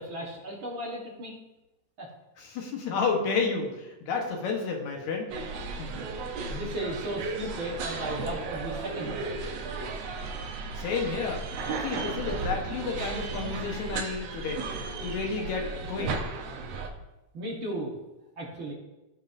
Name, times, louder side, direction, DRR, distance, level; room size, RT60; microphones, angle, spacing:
voice 1, 0.0-1.3 2.0-2.1 6.4-9.4 17.3-17.9 18.4-18.7, right 1 dB, 50° right, -3 dB, 1.7 m, -35 dB
voice 2, 2.4-5.3 5.8-5.9 10.7-11.4 11.8-14.6 15.0-16.2, left 4 dB, 75° left, 1 dB, 2.5 m, -31 dB
sound 1, 5.3-16.9, right 4 dB, 70° right, 1.9 m, -35 dB
15.0 x 5.6 x 2.6 m, 1.0 s
omnidirectional pair, 3.3 m